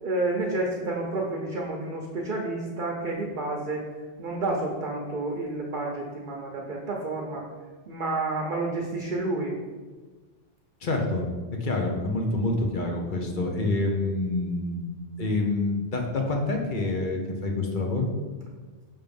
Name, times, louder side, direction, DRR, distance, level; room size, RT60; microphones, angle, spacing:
voice 1, 0.0-3.9 4.2-7.5 7.9-9.6, right 2 dB, 50° right, 0 dB, 0.9 m, -30 dB
voice 2, 10.8-11.2 11.6-14.9 15.2-18.1, left 2 dB, 45° left, 1 dB, 0.9 m, -27 dB
5.9 x 3.5 x 5.2 m, 1.4 s
omnidirectional pair, 1.2 m